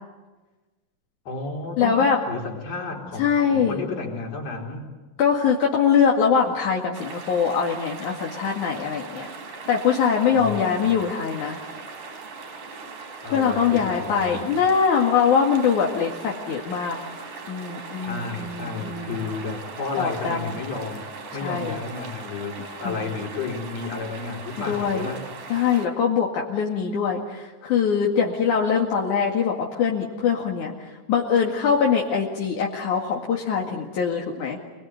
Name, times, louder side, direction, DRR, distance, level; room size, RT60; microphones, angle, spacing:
voice 1, 1.2-4.9 10.3-10.9 13.2-14.6 18.0-21.1 21.3-25.2, left 4 dB, 50° left, 0 dB, 5.1 m, -32 dB
voice 2, 1.8-2.2 3.2-3.8 5.2-9.3 9.7-11.6 13.3-17.0 17.5-19.2 20.0-20.6 21.4-21.8 22.8-23.0 24.7-25.1 25.5-34.6, left 6 dB, 70° left, -1 dB, 3.5 m, -23 dB
sound 1, 6.9-25.9, right 4 dB, 90° right, 5.4 m, -39 dB
27.5 x 21.5 x 9.5 m, 1.3 s
omnidirectional pair, 3.7 m